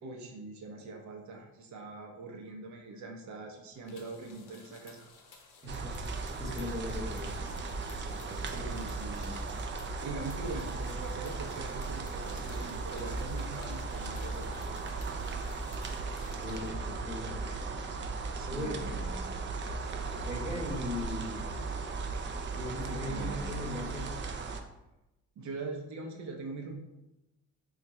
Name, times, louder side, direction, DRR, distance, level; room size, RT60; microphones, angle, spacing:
voice 1, 0.0-5.1 8.4-9.4 10.0-14.5 18.3-19.4 23.0-23.4 25.4-26.7, right 3 dB, 70° right, 2 dB, 0.8 m, -42 dB
sound 1, 3.8-16.7, left 4 dB, 90° left, 0.7 m, -55 dB
voice 2, 5.6-7.7 8.0-8.7 16.4-17.7 18.5-19.0 20.2-21.4 22.5-24.1, left 1 dB, 10° right, -2 dB, 1.0 m, -39 dB
sound 2, 5.7-24.6, right 3 dB, 40° right, 0.4 m, -37 dB
3.2 x 2.4 x 4.1 m, 0.96 s
cardioid pair, 90°, 30 cm